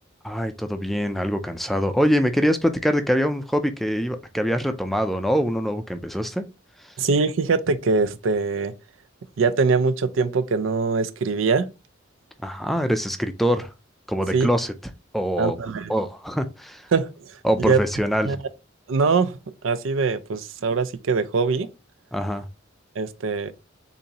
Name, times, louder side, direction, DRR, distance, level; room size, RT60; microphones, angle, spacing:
voice 1, 0.2-6.4 12.4-13.7 14.1-14.7 15.1-15.6 15.9-16.8 17.4-18.4 22.1-22.4, equal, ahead, 0.4 m, -24 dB
voice 2, 7.0-8.7 9.4-11.7 14.3-14.5 15.4-15.9 16.9-17.8 18.2-18.4 18.9-21.7 23.0-23.5, right 4 dB, 85° right, 0.5 m, -23 dB
6.9 x 2.6 x 2.8 m
head